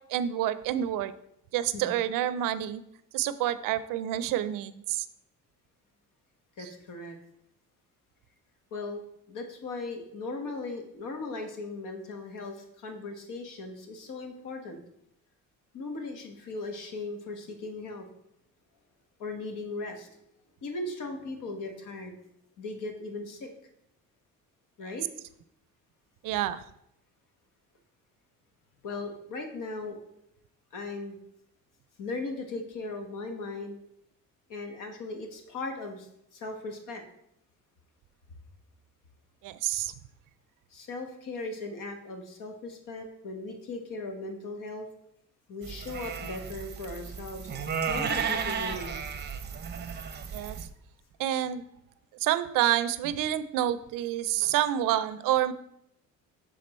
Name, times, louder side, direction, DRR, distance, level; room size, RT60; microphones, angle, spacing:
voice 1, 0.1-1.1 1.5-2.8 3.1-5.1 6.6-6.7 26.2-26.6 39.4-39.9 50.3-50.7 51.2-51.6 52.2-55.5, right 12 dB, 70° right, 14 dB, 0.5 m, -28 dB
voice 2, 6.6-7.2 8.7-14.8 15.7-18.0 19.2-20.1 20.6-22.2 22.6-23.5 24.8-25.0 28.8-30.0 30.7-31.1 32.0-33.8 34.5-37.0 40.7-44.9 45.5-47.5 47.9-49.1, left 3 dB, 70° left, 4 dB, 1.3 m, -38 dB
sound 1, 45.6-50.7, right 6 dB, 30° right, 0.6 m, -34 dB
6.7 x 3.7 x 4.2 m, 0.77 s
cardioid pair, 95°, 33 cm